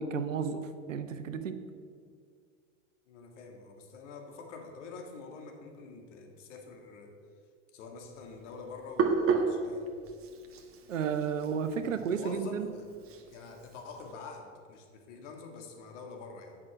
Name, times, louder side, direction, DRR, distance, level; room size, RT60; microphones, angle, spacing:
voice 1, 0.0-1.6 10.9-12.7, right 6 dB, 90° right, 10 dB, 0.9 m, -32 dB
voice 2, 3.1-7.1 7.7-9.9 11.8-12.9 13.3-16.6, left 4 dB, 70° left, 3 dB, 1.8 m, -46 dB
Hands, 8.2-14.1, right 5 dB, 35° right, 1.3 m, -33 dB
8.6 x 6.1 x 7.5 m, 2.1 s
hypercardioid pair, 90°, 37 cm